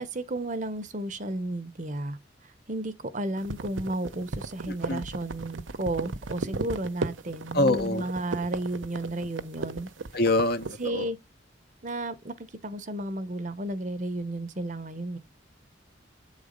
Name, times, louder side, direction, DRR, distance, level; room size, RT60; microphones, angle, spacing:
voice 1, 0.0-2.2 2.7-9.9 10.8-11.2 11.8-15.2, right 1 dB, 40° right, 0.9 m, -33 dB
sound 1, 3.4-10.8, right 3 dB, 90° right, 0.8 m, -35 dB
voice 2, 4.7-5.0 7.5-8.0 10.1-11.1, left 2 dB, 55° left, 1.0 m, -25 dB
8.1 x 4.0 x 5.2 m
head